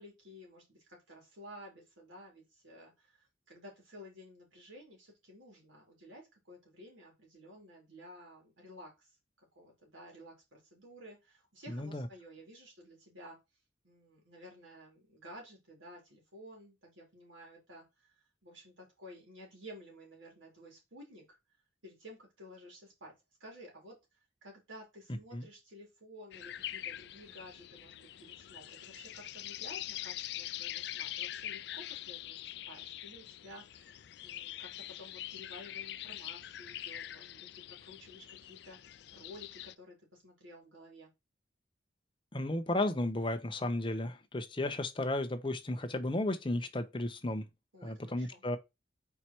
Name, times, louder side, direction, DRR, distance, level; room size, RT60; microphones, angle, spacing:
voice 1, 0.0-9.1 9.6-13.4 13.8-18.1 18.4-21.4 21.8-23.1 23.4-24.0 24.4-41.1 47.7-48.4, equal, 90° right, 3.4 m, -53 dB
voice 2, 11.7-12.1 25.3-25.4 42.3-47.5 47.8-48.6, left 1 dB, 25° left, 0.8 m, -34 dB
sound 1, 26.3-39.7, left 13 dB, 60° left, 0.3 m, -44 dB
4.8 x 4.4 x 4.4 m
head